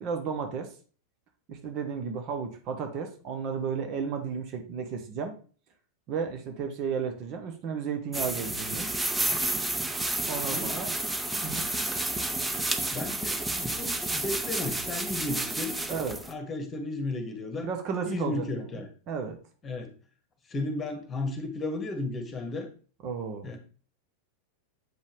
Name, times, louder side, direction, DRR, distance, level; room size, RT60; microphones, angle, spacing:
voice 1, 0.0-0.7 1.5-5.3 6.1-8.9 10.3-10.9 11.4-11.7 15.9-16.2 17.6-18.7 19.1-19.4 23.0-23.6, right 6 dB, 40° right, 5 dB, 1.2 m, -33 dB
sound 1, 8.1-16.3, right 2 dB, 10° right, 0.9 m, -30 dB
voice 2, 10.5-10.8 12.9-15.7 16.3-17.7 18.0-18.9 19.6-19.9 20.5-22.7 23.4-23.6, left 2 dB, 20° left, 7 dB, 1.5 m, -34 dB
8.0 x 5.3 x 3.4 m, 0.39 s
figure-of-eight pair, 90°, 0 cm